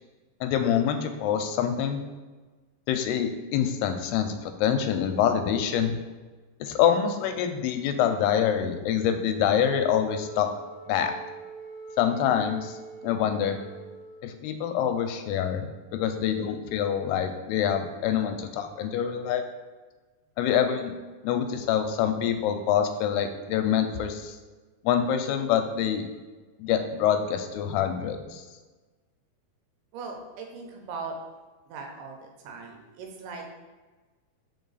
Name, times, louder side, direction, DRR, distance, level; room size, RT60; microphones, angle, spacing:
voice 1, 0.4-2.0 2.9-5.9 6.6-10.5 10.9-11.1 12.0-12.8 13.0-13.6 14.2-15.7 15.9-19.4 20.4-21.0 21.2-24.3 24.8-26.1 26.6-28.4, left 9 dB, 90° left, 7 dB, 2.6 m, -25 dB
Wind instrument woodwind instrument, 10.1-14.4, right 5 dB, 70° right, 1.9 m, -44 dB
voice 2, 29.9-31.2 31.7-32.2 32.4-33.5, right 4 dB, 85° right, 2 dB, 2.8 m, -39 dB
5.1 x 4.7 x 4.0 m, 1.3 s
omnidirectional pair, 4.5 m